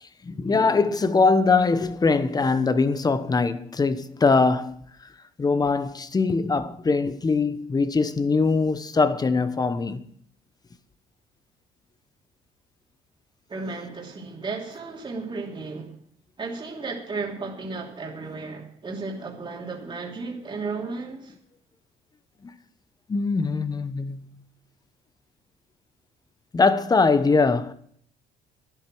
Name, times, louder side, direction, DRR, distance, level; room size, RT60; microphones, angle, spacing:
voice 1, 0.0-4.9 5.4-10.0 22.4-22.5 23.1-24.3 26.5-27.7, left 4 dB, 25° left, 1.0 m, -22 dB
voice 2, 13.5-16.0 16.4-21.3, right 4 dB, 30° right, 2.9 m, -34 dB
11.5 x 10.5 x 6.1 m
cardioid pair, 110°, 17 cm